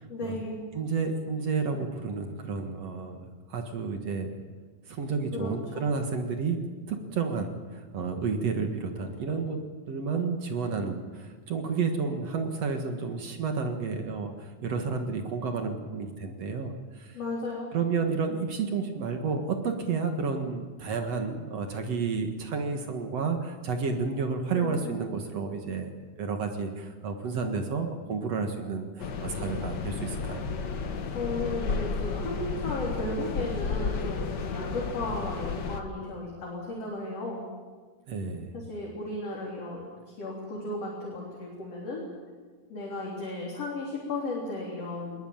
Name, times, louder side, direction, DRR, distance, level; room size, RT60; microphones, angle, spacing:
voice 1, 0.1-0.6 5.3-5.9 17.1-17.7 24.5-25.0 31.1-37.5 38.5-39.9 40.2-42.0 42.7-45.3, left 2 dB, 45° left, -3 dB, 4.4 m, -35 dB
voice 2, 0.7-4.3 4.9-6.6 6.9-17.2 17.7-25.9 26.2-30.5 38.1-38.6, right 5 dB, 55° right, 5 dB, 2.4 m, -31 dB
sound 1, 29.0-35.8, left 5 dB, 85° left, 0.9 m, -32 dB
20.5 x 20.0 x 8.9 m, 1.5 s
omnidirectional pair, 4.1 m